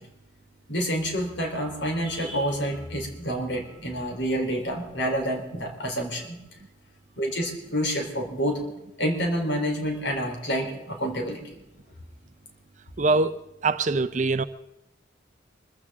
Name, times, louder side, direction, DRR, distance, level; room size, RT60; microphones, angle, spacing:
voice 1, 0.7-6.4 7.2-8.6 9.0-11.5, equal, 65° left, 3.7 m, -28 dB
voice 2, 13.0-13.4 13.6-14.4, right 3 dB, 40° right, 0.6 m, -23 dB
25.0 x 15.0 x 3.7 m
head